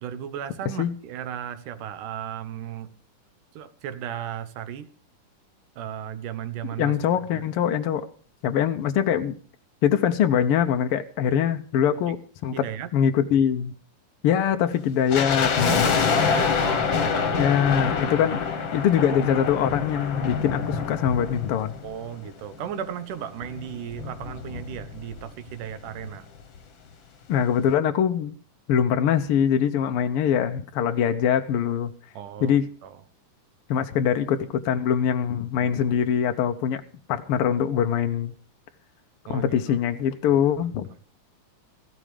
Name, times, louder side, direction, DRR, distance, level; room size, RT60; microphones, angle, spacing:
voice 1, 0.0-2.9 3.5-4.9 5.8-7.0 7.3-7.5 12.1-12.2 12.5-12.9 15.6-17.6 18.3-18.4 21.8-26.3 32.1-33.0 35.6-35.7 39.3-39.8 40.3-40.4, right 9 dB, 80° right, 2.6 m, -35 dB
voice 2, 6.6-8.1 8.4-9.3 9.8-12.6 12.9-13.7 14.2-15.5 15.8-16.0 17.3-18.4 18.7-21.8 27.3-28.3 28.7-31.9 32.4-32.7 33.7-36.8 37.1-38.3 39.3-40.9, left 8 dB, 80° left, 1.2 m, -23 dB
sound 1, 15.1-22.4 22.6-22.7 23.4-25.2 25.5-25.6 25.8-26.1 26.5-26.6, left 6 dB, 50° left, 1.6 m, -26 dB
15.5 x 12.5 x 5.0 m
omnidirectional pair, 3.6 m